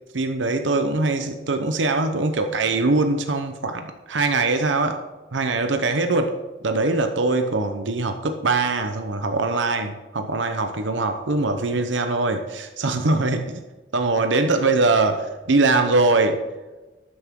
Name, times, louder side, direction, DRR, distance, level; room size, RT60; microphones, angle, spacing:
voice 1, 0.1-5.0 5.3-6.3 6.6-13.6 13.9-16.4, right 3 dB, 90° right, 6 dB, 0.9 m, -22 dB
12.5 x 9.5 x 3.8 m, 1.2 s
head